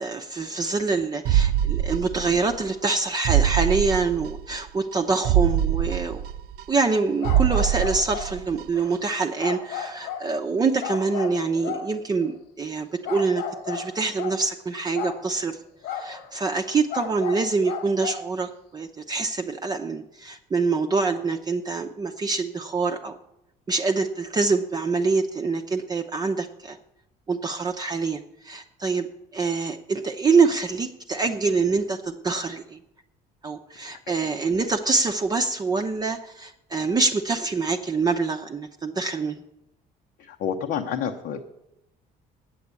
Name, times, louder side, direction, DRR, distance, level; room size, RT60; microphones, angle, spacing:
voice 1, 0.0-6.2 6.7-15.6 15.9-23.2 23.7-26.8 27.3-29.1 29.3-32.8 33.4-39.4, right 4 dB, 25° right, 4 dB, 0.7 m, -25 dB
sound 1, 1.3-2.6 2.9-3.0 3.3-4.6 4.9-5.0 5.3-7.0 7.3-8.6 8.9-9.0, right 10 dB, 65° right, 0.4 m, -23 dB
sound 2, 7.2-8.3 8.7-8.9 9.4-10.3 10.8-12.3 13.0-14.4 14.9-15.2 15.8-18.3, left 8 dB, 90° left, 1.8 m, -34 dB
voice 2, 40.2-41.4, left 7 dB, 75° left, 3 dB, 0.9 m, -29 dB
8.5 x 8.5 x 8.2 m, 0.87 s
cardioid pair, 110°, 17 cm